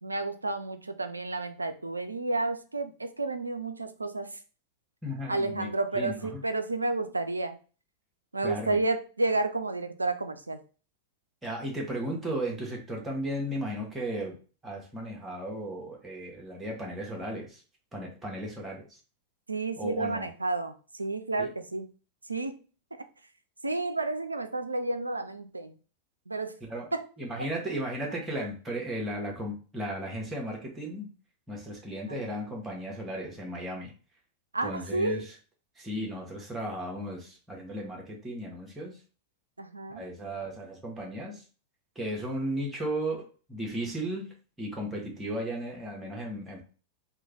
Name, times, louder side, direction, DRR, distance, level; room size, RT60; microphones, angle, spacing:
voice 1, 0.0-4.4 5.3-7.6 8.3-10.6 19.5-20.7 21.0-21.9 22.3-22.6 23.0-23.1 23.6-25.7 26.3-26.5 26.9-27.1 27.4-27.8 32.0-32.4 34.5-35.2 39.6-40.0, right 2 dB, 80° right, 9 dB, 0.3 m, -31 dB
voice 2, 5.0-5.7 5.9-6.4 8.4-8.8 11.4-14.4 14.6-17.6 17.9-19.0 19.8-20.3 21.4-21.5 26.6-26.9 27.2-31.1 31.5-33.9 34.6-35.3 35.8-39.0 39.9-41.4 41.9-43.2 43.5-44.3 44.6-46.6, right 1 dB, 15° right, -1 dB, 1.1 m, -35 dB
3.0 x 2.3 x 3.6 m, 0.37 s
figure-of-eight pair, 90°, 0 cm